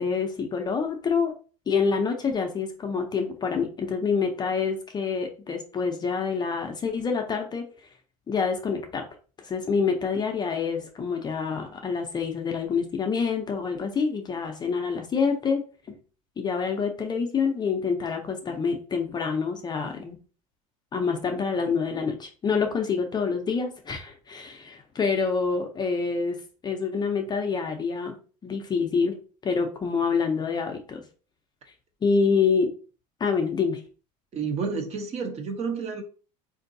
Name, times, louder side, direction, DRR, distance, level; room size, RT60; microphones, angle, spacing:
voice 1, 0.0-1.3 1.7-7.6 8.3-9.1 9.4-16.0 16.4-20.2 20.9-26.4 26.6-28.2 28.4-29.2 29.4-31.0 32.0-32.7 33.2-33.8, left 5 dB, 25° left, 0.5 m, -27 dB
voice 2, 34.3-36.0, right 5 dB, 35° right, 0.7 m, -30 dB
3.7 x 2.6 x 2.6 m
supercardioid pair, 115°, 18 cm